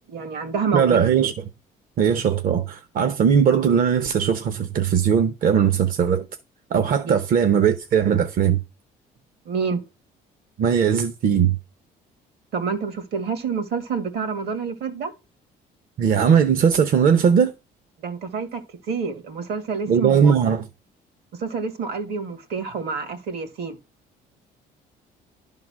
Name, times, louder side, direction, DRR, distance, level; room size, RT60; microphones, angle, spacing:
voice 1, 0.1-1.0 7.0-7.2 9.5-9.8 12.5-15.1 18.0-18.6 18.9-20.4 21.4-23.8, right 5 dB, 70° right, 2.0 m, -28 dB
voice 2, 0.7-1.3 2.0-6.3 6.7-8.6 10.6-11.6 16.0-17.5 19.9-20.6, right 7 dB, 55° right, 0.9 m, -19 dB
11.5 x 3.9 x 6.2 m
cardioid pair, 110°, 17 cm